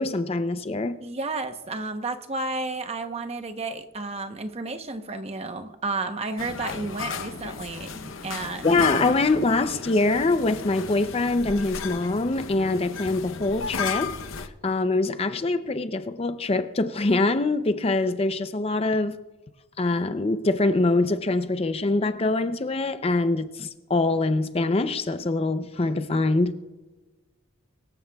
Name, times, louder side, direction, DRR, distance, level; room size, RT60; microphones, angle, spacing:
voice 1, 0.0-1.0 8.6-19.2 19.8-26.5, left 2 dB, 30° left, 0.5 m, -24 dB
voice 2, 1.0-8.8, right 3 dB, 30° right, 0.9 m, -32 dB
sound 1, 6.4-14.5, left 5 dB, 70° left, 0.8 m, -34 dB
23.5 x 14.0 x 2.3 m
head